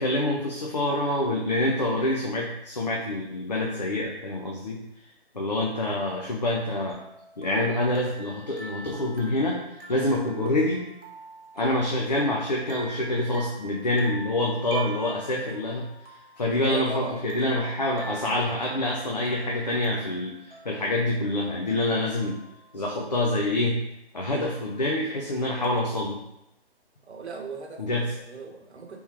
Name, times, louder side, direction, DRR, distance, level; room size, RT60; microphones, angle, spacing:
voice 1, 0.0-5.1 5.3-7.0 7.4-10.8 11.5-22.4 22.7-23.8 24.1-26.2 27.8-28.1, left 1 dB, 45° left, -2 dB, 0.4 m, -26 dB
sound 1, 6.4-22.8 24.5-25.0 25.6-25.8, right 2 dB, 65° right, 1.2 m, -46 dB
voice 2, 16.7-17.3 27.0-29.0, right 3 dB, 90° right, 2 dB, 0.9 m, -38 dB
3.5 x 2.9 x 4.5 m, 0.83 s
hypercardioid pair, 180°, 32 cm